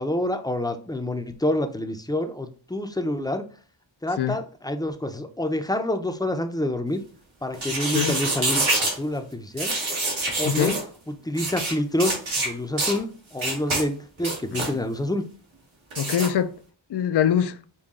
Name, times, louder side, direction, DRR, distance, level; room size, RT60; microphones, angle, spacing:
voice 1, 0.0-3.4 4.0-7.0 7.4-9.7 10.4-10.8 11.1-15.3, left 1 dB, 10° left, 0.6 m, -27 dB
sound 1, 7.5-9.0 9.6-10.8 11.3-11.7 12.0-12.5 12.8-13.0 13.4-13.8 14.2-14.7 15.9-16.3, right 2 dB, 85° right, 1.7 m, -26 dB
voice 2, 10.4-10.8 16.0-16.6 16.9-17.6, left 9 dB, 60° left, 0.5 m, -23 dB
5.5 x 2.2 x 3.6 m
wide cardioid pair, 55°, 47 cm